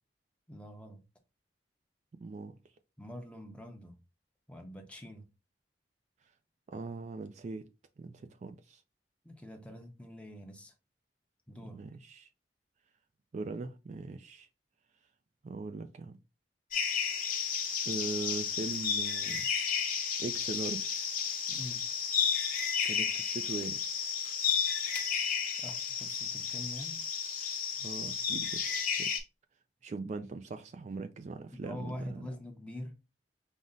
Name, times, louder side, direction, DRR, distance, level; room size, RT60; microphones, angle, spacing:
voice 1, 0.5-1.0 3.0-4.0 4.5-5.2 9.2-10.7 11.5-11.8 21.5-21.9 25.6-27.0 31.5-32.9, left 1 dB, 5° left, 0.7 m, -45 dB
voice 2, 2.2-2.5 6.7-7.6 8.0-8.8 11.6-12.3 13.3-14.5 15.4-16.2 17.9-19.5 20.2-21.0 22.8-23.8 27.8-29.1 29.8-32.3, right 3 dB, 40° right, 0.3 m, -40 dB
sound 1, 16.7-29.2, left 7 dB, 50° left, 1.0 m, -32 dB
5.3 x 2.0 x 3.7 m
head